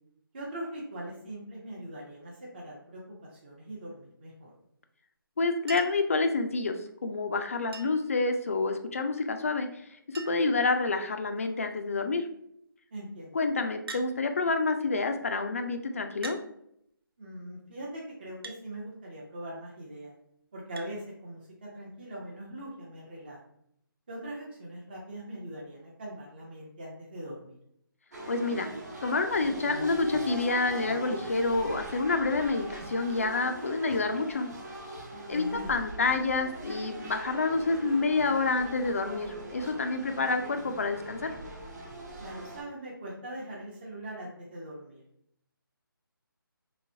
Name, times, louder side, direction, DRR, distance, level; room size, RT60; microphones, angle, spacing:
voice 1, 0.3-3.0 3.3-4.5 12.9-13.4 17.2-20.1 20.5-23.4 24.1-27.6 35.3-35.8 42.2-45.0, right 1 dB, 25° right, -4 dB, 0.6 m, -41 dB
voice 2, 5.4-6.8 7.0-9.8 10.1-12.3 13.3-16.4 28.3-28.7 29.0-34.5 35.3-41.3, left 3 dB, 40° left, 6 dB, 0.3 m, -28 dB
Chink clink, 5.7-6.1 7.7-8.1 9.5-9.6 9.8-9.9 10.2-10.6 11.4-11.7 13.9-14.1 15.2-15.3 16.2-16.5 18.4-18.6 20.8-20.9 22.4-22.5, right 4 dB, 90° right, 0.5 m, -43 dB
sound 1, 28.1-42.6, right 1 dB, 45° right, 1.0 m, -41 dB
3.3 x 3.0 x 2.7 m, 0.73 s
figure-of-eight pair, 170°, 12 cm